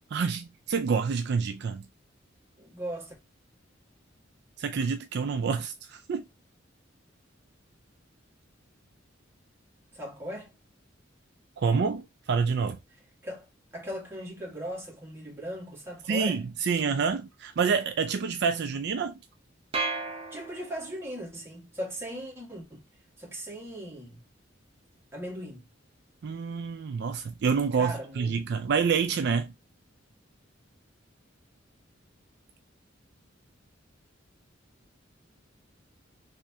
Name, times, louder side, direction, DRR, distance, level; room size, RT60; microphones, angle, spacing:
voice 1, 0.1-1.8 4.6-6.2 11.6-12.8 16.1-19.1 26.2-29.5, right 5 dB, 60° right, 0.4 m, -27 dB
voice 2, 2.6-3.1 9.9-10.5 13.2-13.4 13.7-16.4 20.3-22.8 23.2-24.2 25.1-25.7 27.8-28.3, right 1 dB, 15° right, 1.6 m, -38 dB
sound 1, 19.7-21.1, right 3 dB, 30° right, 0.8 m, -34 dB
3.4 x 3.2 x 2.7 m
head